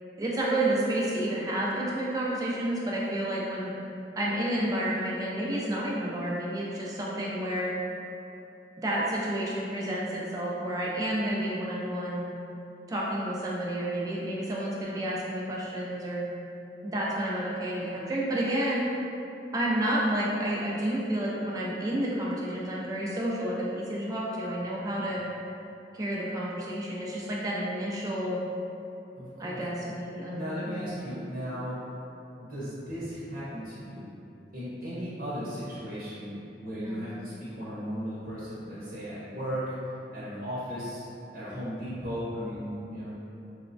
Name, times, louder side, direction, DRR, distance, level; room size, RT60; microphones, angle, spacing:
voice 1, 0.2-3.7 4.2-7.7 8.8-12.3 12.9-16.2 16.8-18.9 19.5-25.2 25.9-28.4 29.4-30.6 36.8-37.0, right 1 dB, 20° right, -5 dB, 0.3 m, -30 dB
voice 2, 29.1-29.6 30.3-31.8 32.4-34.0 34.5-39.7 40.1-41.0 41.3-43.1, equal, 55° right, -11 dB, 0.7 m, -36 dB
3.0 x 2.1 x 2.5 m, 2.8 s
head